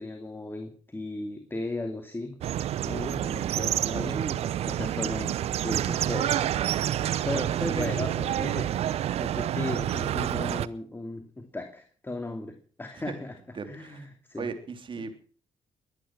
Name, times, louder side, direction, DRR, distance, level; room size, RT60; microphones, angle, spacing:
voice 1, 0.0-2.4 2.9-4.2 4.7-6.4 6.7-8.7 9.0-13.4 13.6-14.5 15.0-15.1, left 2 dB, 20° left, 5 dB, 2.8 m, -36 dB
sound 1, 2.4-10.7, right 11 dB, 70° right, 0.8 m, -28 dB
voice 2, 3.9-4.6 7.3-8.1 13.5-14.1 14.4-15.1, right 5 dB, 50° right, 8 dB, 3.4 m, -36 dB
22.5 x 10.5 x 6.2 m, 0.42 s
supercardioid pair, 60°, 11 cm